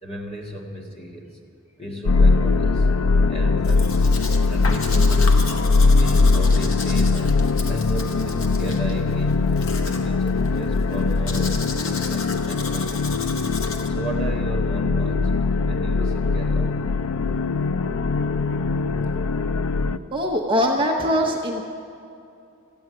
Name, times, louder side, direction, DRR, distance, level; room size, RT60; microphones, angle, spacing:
voice 1, 0.0-1.4 1.8-2.9 3.3-4.1 4.4-5.5 5.9-9.4 9.8-13.4 13.9-16.7 19.9-20.0, right 1 dB, 25° left, -1 dB, 1.9 m, -35 dB
sound 1, 2.1-20.0, left 3 dB, 80° left, 0.4 m, -21 dB
Domestic sounds home sounds, 3.6-13.9, left 4 dB, 60° left, 1.3 m, -35 dB
voice 2, 20.1-21.6, equal, 25° right, 1 dB, 0.9 m, -22 dB
14.5 x 8.7 x 9.6 m, 2.6 s
head